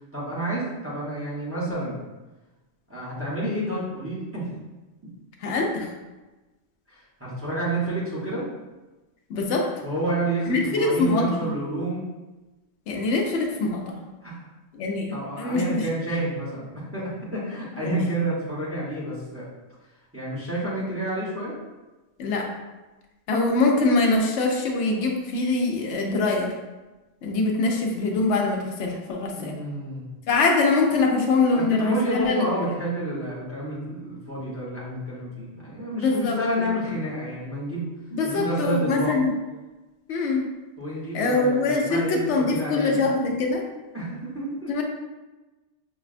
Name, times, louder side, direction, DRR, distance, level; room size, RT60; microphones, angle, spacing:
voice 1, 0.1-2.0 2.9-4.5 6.9-8.5 9.8-12.1 14.2-14.5 15.1-19.5 20.1-21.6 29.3-30.1 31.5-37.9 38.2-39.2 40.8-43.1 43.9-44.8, right 1 dB, 15° right, -8 dB, 0.9 m, -29 dB
voice 2, 5.4-5.9 9.3-9.7 10.5-11.5 12.9-14.0 14.7-15.8 17.8-18.0 22.2-22.5 23.3-26.5 27.2-29.6 30.3-32.7 35.9-36.7 38.1-39.3 40.1-40.4 41.1-43.6 44.7-44.8, left 3 dB, 80° left, 1 dB, 0.9 m, -23 dB
5.5 x 2.2 x 2.4 m, 1.1 s
omnidirectional pair, 1.2 m